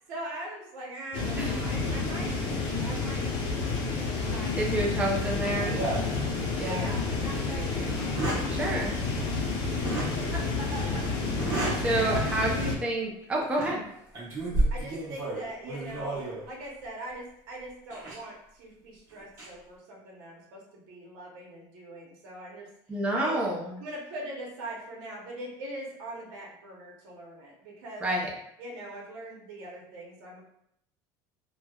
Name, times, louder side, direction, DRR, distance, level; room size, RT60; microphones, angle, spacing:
voice 1, 0.0-2.4 2.8-3.4 4.3-6.1 6.5-9.0 9.3-11.0 11.6-12.6 14.7-16.2 16.4-23.4 23.8-28.0 28.6-30.4, right 1 dB, 80° right, -2 dB, 0.8 m, -42 dB
sound 1, 1.1-12.8, left 3 dB, 45° left, 0.6 m, -30 dB
voice 2, 4.6-5.8 6.6-6.9 8.5-8.9 11.7-13.8 22.9-23.7 28.0-28.3, right 1 dB, 10° right, -2 dB, 0.5 m, -29 dB
sound 2, 5.7-6.8 7.2-7.3 8.0-8.5 9.8-10.1 11.3-11.9 12.3-12.5 13.4-13.8 14.1-16.5 17.9-18.1 19.1-19.4, right 2 dB, 30° right, 1.1 m, -31 dB
3.1 x 2.1 x 2.3 m, 0.74 s
cardioid pair, 165°, 10 cm